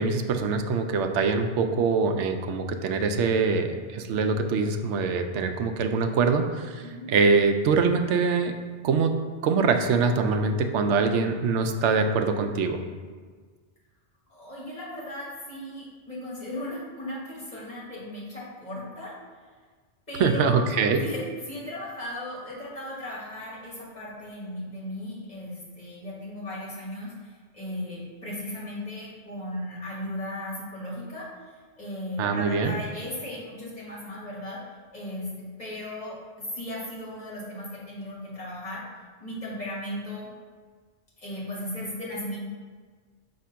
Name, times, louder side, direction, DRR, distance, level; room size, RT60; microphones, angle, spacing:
voice 1, 0.0-8.5 8.8-9.1 9.4-12.8 20.2-21.0 32.2-32.7, right 4 dB, 90° right, 6 dB, 0.9 m, -24 dB
voice 2, 6.8-7.1 14.3-19.2 20.1-20.6 21.0-34.6 34.9-38.8 39.2-40.3 41.2-42.4, left 1 dB, 40° left, -6 dB, 1.8 m, -36 dB
6.0 x 2.9 x 5.6 m, 1.5 s
omnidirectional pair, 1.2 m